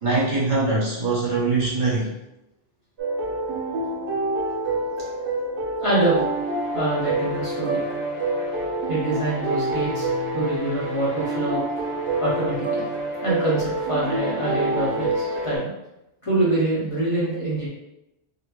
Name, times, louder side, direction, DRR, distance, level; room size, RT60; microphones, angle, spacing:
voice 1, 0.0-2.1, right 3 dB, 50° right, -7 dB, 1.1 m, -22 dB
sound 1, 3.0-15.6, right 2 dB, 90° right, 1.0 m, -27 dB
voice 2, 5.8-6.3 6.7-7.8 8.9-11.6 12.2-12.9 13.2-15.7 16.2-17.7, right 1 dB, 35° left, -8 dB, 0.8 m, -25 dB
4.0 x 2.0 x 2.9 m, 0.91 s
omnidirectional pair, 1.1 m